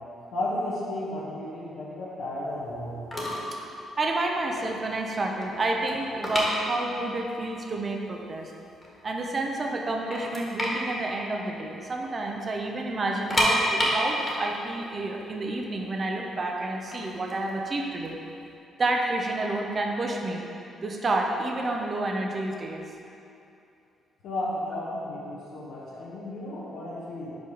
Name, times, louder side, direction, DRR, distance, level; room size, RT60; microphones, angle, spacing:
voice 1, 0.3-3.0 24.2-27.3, left 1 dB, 85° left, -8 dB, 1.1 m, -33 dB
sound 1, 2.8-2.9 3.1-3.6 3.8-4.1 4.6-4.7 4.9-7.2 7.5-7.6 8.2-8.3 8.7-9.4 9.7-9.8 10.1-12.1 12.4-12.5 13.1-16.0 16.7-18.4, equal, 20° left, 1.5 m, -29 dB
voice 2, 4.0-8.5 9.0-18.2 18.8-20.4 20.8-22.8, right 2 dB, 35° right, 1 dB, 0.7 m, -29 dB
5.1 x 4.8 x 5.2 m, 2.7 s
cardioid pair, 90°, 0 cm